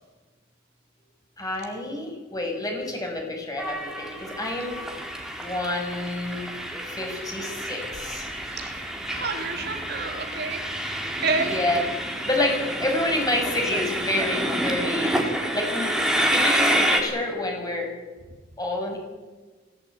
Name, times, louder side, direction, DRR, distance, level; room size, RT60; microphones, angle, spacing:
voice 1, 1.4-4.8 5.4-6.5 6.8-8.3 11.5-11.8 12.3-15.2 15.5-15.9 16.3-17.9 18.6-19.1, left 1 dB, 20° left, 1 dB, 6.8 m, -28 dB
Train, 3.6-17.0, equal, 5° right, 3.8 m, -28 dB
voice 2, 8.4-8.8 9.1-10.6 11.2-11.6, right 4 dB, 55° right, 4 dB, 3.2 m, -29 dB
23.5 x 17.0 x 9.3 m, 1.3 s
head